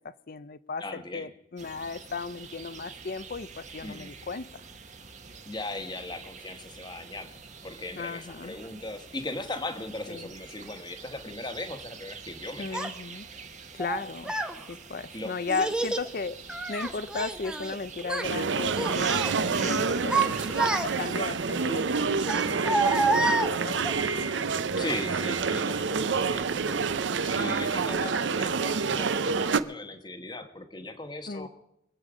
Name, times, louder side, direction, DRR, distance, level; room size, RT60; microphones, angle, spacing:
voice 1, 0.0-4.5 8.0-8.5 10.1-10.3 12.6-13.2 13.7-14.3 14.7-20.4 20.8-23.8 31.3-31.5, left 4 dB, 50° left, 0.5 m, -36 dB
voice 2, 0.8-1.3 3.8-4.1 5.5-12.8 15.1-15.3 19.7-19.9 24.8-31.5, left 2 dB, 25° left, 1.2 m, -38 dB
sound 1, 1.6-21.2, right 5 dB, 40° right, 1.3 m, -45 dB
Child speech kid speaking, 12.7-12.9 13.8-14.5 15.5-16.1 16.5-17.8 18.0-18.3 18.7-19.3 19.8-21.2 22.2-23.9, right 2 dB, 5° right, 0.8 m, -28 dB
sound 2, 18.2-29.6, right 5 dB, 75° right, 0.6 m, -28 dB
24.0 x 8.2 x 5.0 m
head